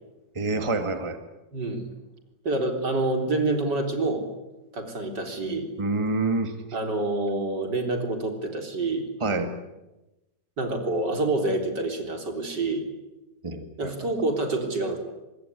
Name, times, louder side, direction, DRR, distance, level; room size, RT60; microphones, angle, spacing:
voice 1, 0.4-1.2 5.8-6.5 9.2-9.5 13.4-13.9, right 2 dB, 15° right, 7 dB, 1.8 m, -27 dB
voice 2, 1.5-1.9 2.4-4.2 4.7-5.7 6.7-9.1 10.6-12.9 13.8-15.0, right 2 dB, 70° right, 5 dB, 4.5 m, -27 dB
25.0 x 21.5 x 9.8 m, 1.0 s
omnidirectional pair, 1.9 m